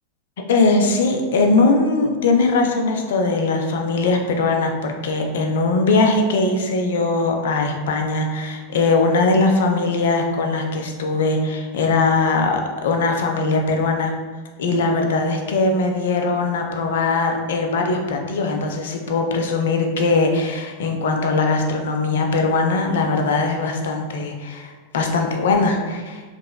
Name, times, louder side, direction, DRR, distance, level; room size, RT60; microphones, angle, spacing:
voice 1, 0.5-14.1 14.6-26.2, left 3 dB, 60° left, 3 dB, 0.4 m, -20 dB
3.0 x 2.9 x 2.2 m, 1.5 s
figure-of-eight pair, 90°, 0 cm